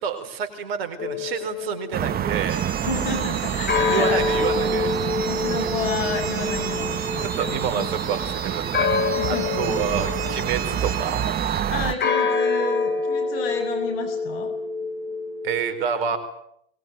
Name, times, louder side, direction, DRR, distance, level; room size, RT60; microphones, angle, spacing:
voice 1, 0.0-2.6 3.9-4.9 5.6-5.7 7.4-8.9 9.2-11.2 15.4-16.2, right 7 dB, 70° right, 8 dB, 4.4 m, -28 dB
sound 1, 1.0-2.5 3.7-11.2 12.0-15.6, left 4 dB, 35° left, 6.0 m, -27 dB
sound 2, 1.9-11.9, right 10 dB, 30° right, 1.0 m, -27 dB
sound 3, 2.5-12.3, right 7 dB, 85° right, 2.6 m, -36 dB
voice 2, 2.8-4.7 5.3-7.9 9.1-9.5 11.7-14.5, left 5 dB, 65° left, 8 dB, 6.9 m, -31 dB
23.0 x 21.0 x 9.3 m, 0.72 s
hypercardioid pair, 90°, 30 cm